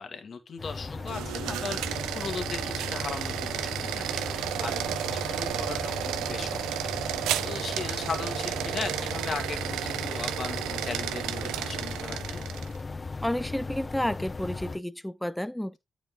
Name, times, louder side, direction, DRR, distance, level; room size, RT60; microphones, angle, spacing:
voice 1, 0.0-12.4, left 5 dB, 55° left, 1.9 m, -38 dB
sound 1, 0.6-14.8, left 3 dB, 35° left, 0.4 m, -37 dB
sound 2, 1.0-12.8, right 11 dB, 85° right, 0.5 m, -32 dB
voice 2, 13.2-15.8, left 1 dB, 5° left, 0.7 m, -31 dB
9.1 x 5.2 x 3.6 m
supercardioid pair, 50°, 0 cm